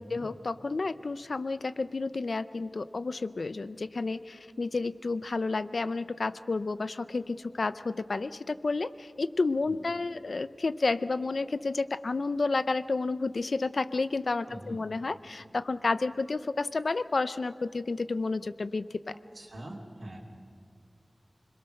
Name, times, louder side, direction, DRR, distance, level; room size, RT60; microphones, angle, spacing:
voice 1, 0.0-19.1, left 3 dB, 80° left, 14 dB, 0.6 m, -31 dB
voice 2, 14.5-14.8 19.3-20.2, right 1 dB, 80° right, -5 dB, 2.8 m, -43 dB
25.5 x 22.0 x 6.6 m, 2.2 s
wide cardioid pair, 65°, 0 cm